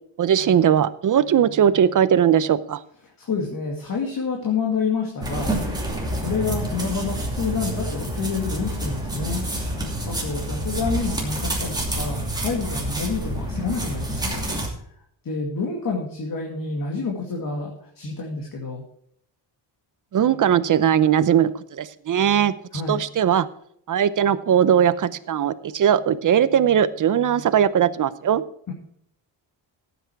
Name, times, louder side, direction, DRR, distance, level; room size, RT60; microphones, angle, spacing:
voice 1, 0.2-2.8 20.1-22.5 22.9-23.5 23.9-28.4, right 9 dB, 45° right, 14 dB, 0.7 m, -19 dB
voice 2, 3.2-9.4 10.1-14.7 15.2-18.8 22.7-23.0 28.7-28.8, left 4 dB, 45° left, 0 dB, 2.3 m, -28 dB
sound 1, 5.2-14.7, right 1 dB, 10° right, 2.7 m, -28 dB
14.5 x 8.1 x 4.7 m, 0.68 s
wide cardioid pair, 145°, 46 cm